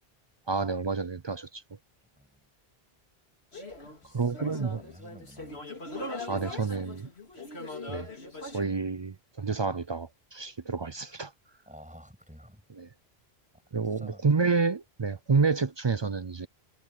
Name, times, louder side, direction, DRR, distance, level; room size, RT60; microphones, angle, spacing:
voice 1, 0.5-1.6 4.1-4.8 6.3-7.1 7.9-8.1 8.5-11.3 12.8-12.9 13.7-16.5, right 4 dB, 40° right, 0.4 m, -29 dB
voice 2, 2.2-2.5 4.0-5.6 11.7-12.6 13.8-14.3, equal, 5° right, 8.0 m, -51 dB
sound 1, 3.5-8.6, left 2 dB, 85° left, 3.6 m, -40 dB
omnidirectional pair, 1.1 m